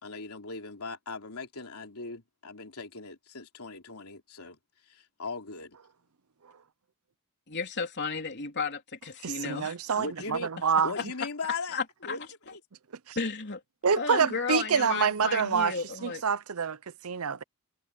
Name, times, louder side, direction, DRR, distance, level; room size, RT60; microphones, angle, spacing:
voice 1, 0.0-4.6 4.9-5.8 10.0-12.2 12.5-12.6, left 4 dB, 80° left, 3.3 m, -39 dB
voice 2, 7.5-9.8 11.0-11.1 11.4-12.2 13.2-13.6 14.0-16.2, left 5 dB, 50° left, 3.4 m, -33 dB
voice 3, 9.2-10.9 13.1-13.2 13.8-15.7 16.0-16.8 17.0-17.4, right 6 dB, 75° right, 0.7 m, -26 dB
head